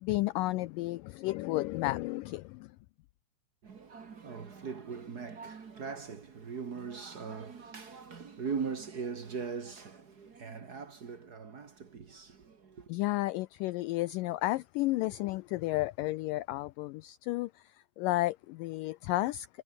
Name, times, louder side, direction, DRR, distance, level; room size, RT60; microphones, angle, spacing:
voice 1, 0.0-2.7 12.9-19.5, left 18 dB, 90° left, 1.9 m, -32 dB
voice 2, 3.6-12.9, right 5 dB, 50° right, 1.1 m, -40 dB
omnidirectional pair, 4.5 m